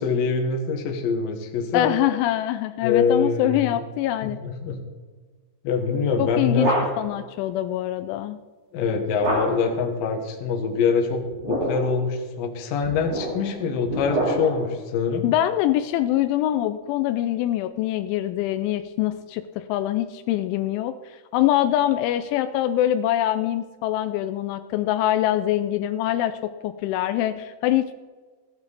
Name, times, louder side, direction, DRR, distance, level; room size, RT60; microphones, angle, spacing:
voice 1, 0.0-1.9 2.8-3.7 4.2-4.8 5.6-6.8 8.7-15.2, left 5 dB, 60° left, 3 dB, 2.6 m, -24 dB
voice 2, 1.7-4.4 6.2-8.4 15.2-27.9, left 13 dB, 85° left, 10 dB, 2.9 m, -24 dB
sound 1, 6.0-7.2 9.2-9.8 11.2-12.0 12.8-14.7, equal, 40° right, 3.4 m, -28 dB
16.0 x 10.5 x 4.1 m, 1.4 s
omnidirectional pair, 5.5 m